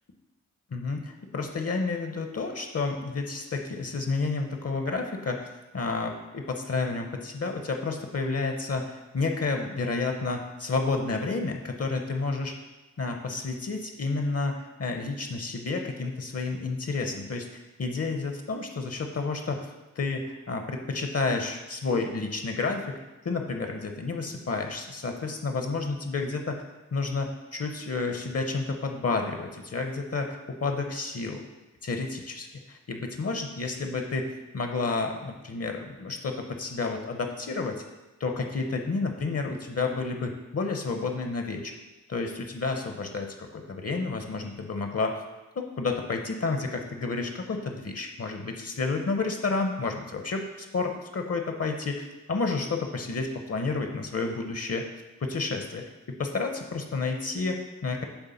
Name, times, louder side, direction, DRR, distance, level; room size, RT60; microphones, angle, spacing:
voice 1, 0.7-5.5 5.7-12.5 13.0-19.7 20.0-23.0 23.2-26.6 26.9-31.4 31.8-37.8 38.2-41.7 42.1-45.2 45.6-54.8 55.2-58.0, left 3 dB, 50° left, 4 dB, 0.8 m, -30 dB
8.1 x 3.3 x 5.7 m, 1.1 s
wide cardioid pair, 105°, 31 cm